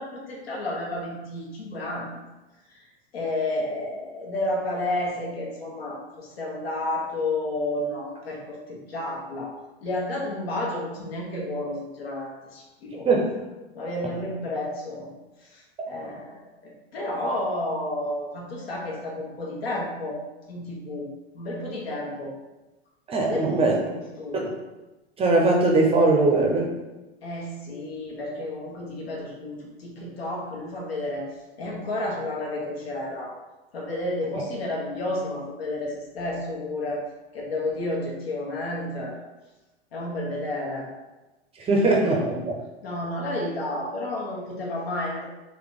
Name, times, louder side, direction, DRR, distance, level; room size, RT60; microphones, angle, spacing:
voice 1, 0.0-2.1 2.7-2.8 3.1-9.5 9.8-13.1 13.7-15.1 15.4-20.2 20.5-21.1 21.3-22.3 23.2-24.5 27.2-33.3 33.7-37.0 37.3-39.2 39.9-40.9 42.0-42.3 42.8-45.2, left 1 dB, 70° left, -2 dB, 1.3 m, -31 dB
voice 2, 23.1-23.7 24.3-24.5 25.2-26.7 41.6-42.4, right 2 dB, 20° right, 0 dB, 0.7 m, -20 dB
3.9 x 2.8 x 3.7 m, 1.1 s
figure-of-eight pair, 95°, 32 cm